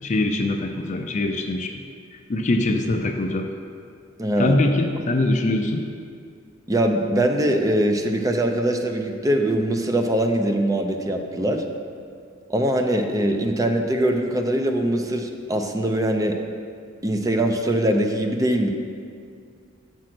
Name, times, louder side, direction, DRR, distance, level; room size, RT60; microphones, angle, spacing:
voice 1, 0.0-1.8 2.1-3.5 4.4-5.9, left 2 dB, 40° left, 4 dB, 0.4 m, -23 dB
voice 2, 4.2-4.6 6.7-11.6 12.5-16.4 17.0-18.7, right 1 dB, 20° right, 4 dB, 0.6 m, -22 dB
7.5 x 6.3 x 6.0 m, 2.3 s
head